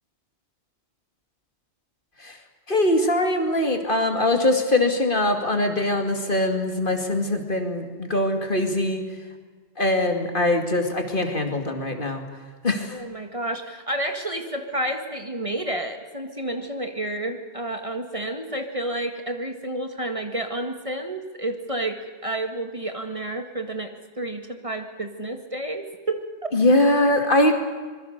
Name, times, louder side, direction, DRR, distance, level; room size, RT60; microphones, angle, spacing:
voice 1, 2.7-9.1 9.8-12.2 12.6-13.0 26.5-27.5, left 1 dB, 50° left, 5 dB, 2.6 m, -22 dB
voice 2, 12.9-26.2, right 1 dB, 30° right, 5 dB, 1.7 m, -30 dB
26.0 x 21.5 x 6.7 m, 1.5 s
omnidirectional pair, 1.2 m